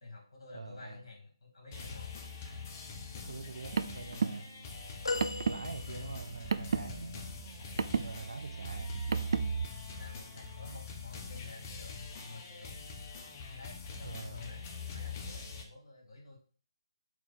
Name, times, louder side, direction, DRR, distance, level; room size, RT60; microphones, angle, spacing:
voice 1, 0.0-2.1 5.8-6.1 7.7-7.9 9.9-12.7 13.5-14.6 14.9-16.4, left 3 dB, 60° left, 2.3 m, -50 dB
voice 2, 0.5-1.0 3.3-4.8 5.5-7.3 7.9-8.9 14.0-14.5, right 3 dB, 80° right, 0.8 m, -45 dB
sound 1, 1.7-15.6, left 5 dB, 25° left, 0.7 m, -44 dB
Car, 3.4-9.7, right 5 dB, 60° right, 0.3 m, -34 dB
sound 2, 5.0-6.5 7.2-7.3, left 3 dB, 85° left, 0.5 m, -38 dB
4.5 x 2.5 x 4.1 m
hypercardioid pair, 160°, 3 cm